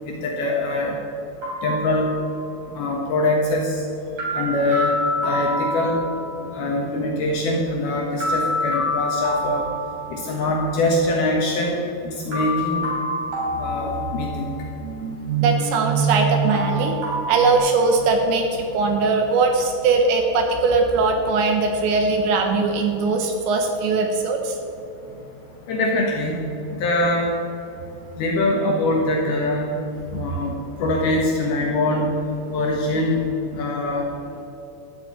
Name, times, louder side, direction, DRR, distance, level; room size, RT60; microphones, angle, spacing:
voice 1, 0.1-1.0 1.6-2.1 2.7-3.8 4.3-4.9 5.2-6.0 6.5-9.7 10.1-11.7 12.3-12.8 13.6-14.5 25.7-26.4 26.8-27.3 28.2-29.7 30.1-30.5 30.8-32.1 32.5-33.2 33.5-34.0, left 2 dB, 65° left, -1 dB, 2.6 m, -23 dB
sound 1, 1.4-2.6 4.2-6.5 8.2-10.5 12.3-14.7 16.5-17.6, left 1 dB, 35° right, 4.5 m, -27 dB
voice 2, 14.8-24.6, right 4 dB, 75° right, 4 dB, 3.0 m, -20 dB
13.0 x 7.5 x 8.5 m, 2.8 s
omnidirectional pair, 5.8 m